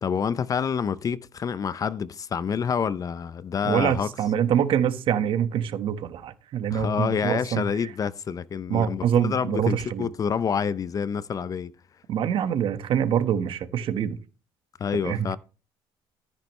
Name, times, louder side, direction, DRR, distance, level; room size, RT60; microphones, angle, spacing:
voice 1, 0.0-4.1 6.7-11.7 14.8-15.4, left 7 dB, 35° left, 0.6 m, -27 dB
voice 2, 3.6-7.6 8.7-10.1 12.1-14.2 15.0-15.3, right 9 dB, 60° right, 1.4 m, -25 dB
14.0 x 9.8 x 3.2 m
cardioid pair, 110°, 10 cm